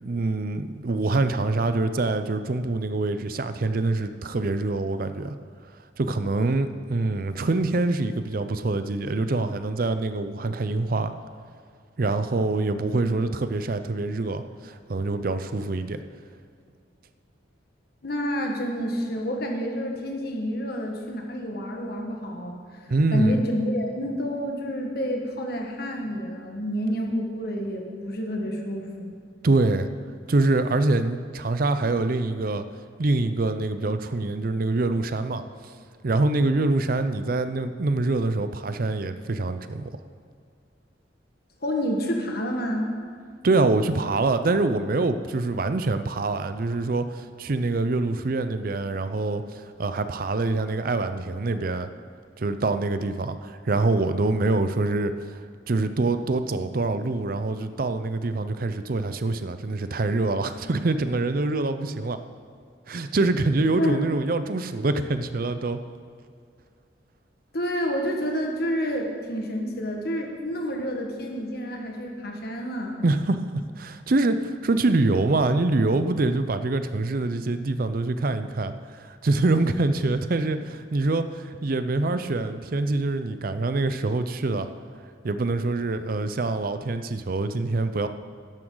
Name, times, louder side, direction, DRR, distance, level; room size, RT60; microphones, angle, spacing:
voice 1, 0.0-5.4 6.0-11.1 12.0-16.0 22.9-23.4 29.4-29.9 30.3-32.6 33.0-35.7 36.0-40.0 43.4-51.9 52.4-62.2 62.9-65.8 73.0-84.7 85.2-88.1, right 2 dB, 50° right, 10 dB, 0.5 m, -25 dB
voice 2, 18.0-29.1 41.6-42.9 63.8-64.0 67.5-73.0, equal, 55° left, 1 dB, 1.5 m, -29 dB
12.5 x 11.0 x 3.9 m, 2.2 s
head